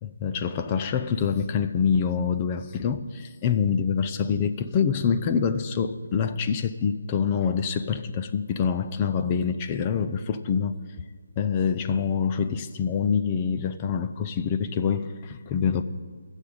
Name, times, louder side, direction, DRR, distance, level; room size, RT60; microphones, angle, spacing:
voice 1, 0.0-10.8 11.4-15.8, left 6 dB, 20° left, 9 dB, 0.5 m, -26 dB
13.5 x 7.2 x 9.4 m, 1.6 s
figure-of-eight pair, 165°, 0 cm